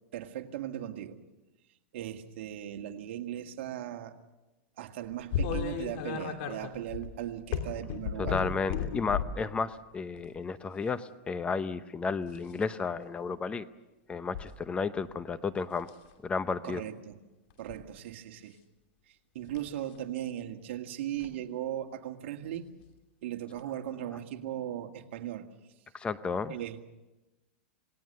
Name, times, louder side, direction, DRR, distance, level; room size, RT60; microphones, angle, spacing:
voice 1, 0.1-1.2 1.9-4.1 4.8-8.4 16.6-17.2 17.6-18.6 19.1-22.6 23.2-25.5 26.5-26.8, right 11 dB, 70° right, 5 dB, 1.9 m, -38 dB
sound 1, 5.3-9.4 10.2-10.4 12.2-12.6 14.3-14.5 15.0-15.4 15.8-16.1 17.5-17.8 19.5-19.7 21.2-21.3 22.8-22.9 23.6-23.7, left 7 dB, 60° left, 3.1 m, -34 dB
voice 2, 8.2-13.7 14.1-15.9 16.2-16.8 25.9-26.6, left 4 dB, 15° left, 13 dB, 0.8 m, -32 dB
27.0 x 19.0 x 6.7 m, 1.1 s
supercardioid pair, 135°, 7 cm